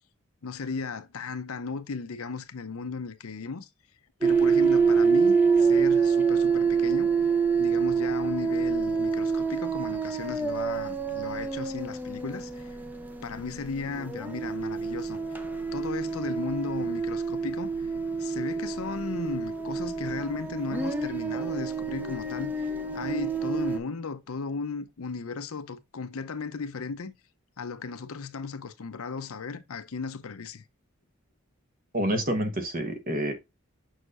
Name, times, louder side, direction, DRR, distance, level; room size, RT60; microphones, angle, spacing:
voice 1, 0.4-3.7 4.2-7.1 7.6-12.8 13.2-15.4 15.7-17.7 18.2-27.1 27.6-30.6, left 4 dB, 75° left, 0.7 m, -36 dB
sound 1, 4.2-23.8, right 5 dB, 10° right, 0.6 m, -27 dB
voice 2, 31.9-33.3, right 1 dB, 40° right, 1.0 m, -28 dB
6.4 x 6.3 x 2.4 m
head